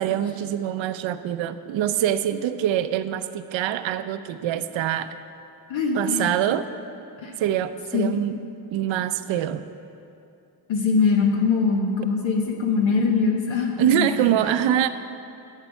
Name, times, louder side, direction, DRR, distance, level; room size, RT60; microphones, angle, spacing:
voice 1, 0.0-5.1 5.9-6.7 7.4-8.3 8.7-9.6 13.8-14.9, right 10 dB, 70° right, 11 dB, 0.6 m, -24 dB
voice 2, 5.7-6.3 7.2-7.4 7.9-8.1 10.7-14.3, left 4 dB, 70° left, 0 dB, 1.3 m, -22 dB
8.9 x 6.7 x 7.1 m, 2.6 s
supercardioid pair, 55°, 48 cm